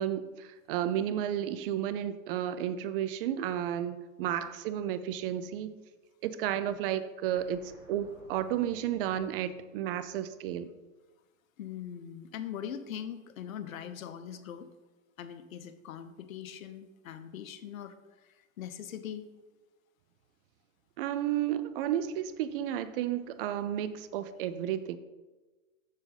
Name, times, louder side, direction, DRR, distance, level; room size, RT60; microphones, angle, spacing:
voice 1, 0.0-5.7 6.2-10.7 21.0-25.0, right 11 dB, 45° right, 13 dB, 0.5 m, -32 dB
sound 1, 7.3-10.6, left 1 dB, 5° right, 2.2 m, -58 dB
voice 2, 11.6-14.7 15.2-19.3, left 9 dB, 80° left, 11 dB, 0.9 m, -42 dB
7.3 x 6.7 x 4.0 m, 1.2 s
hypercardioid pair, 130°, 40 cm